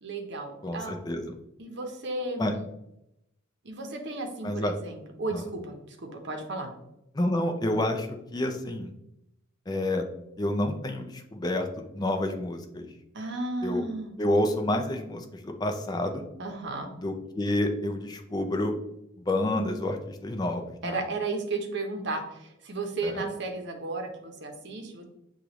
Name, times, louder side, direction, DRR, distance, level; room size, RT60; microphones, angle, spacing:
voice 1, 0.0-1.0 1.6-2.5 3.6-6.7 13.1-14.1 16.4-16.9 20.8-25.0, right 3 dB, 60° right, 4 dB, 0.8 m, -34 dB
voice 2, 0.6-1.3 2.4-2.5 4.4-4.7 5.3-5.4 7.1-8.9 9.7-10.0 10.4-12.9 13.6-13.8 14.2-16.2 17.0-18.7 19.2-21.0 23.0-23.2, left 1 dB, 20° left, 4 dB, 0.4 m, -29 dB
6.5 x 2.4 x 3.0 m, 0.83 s
head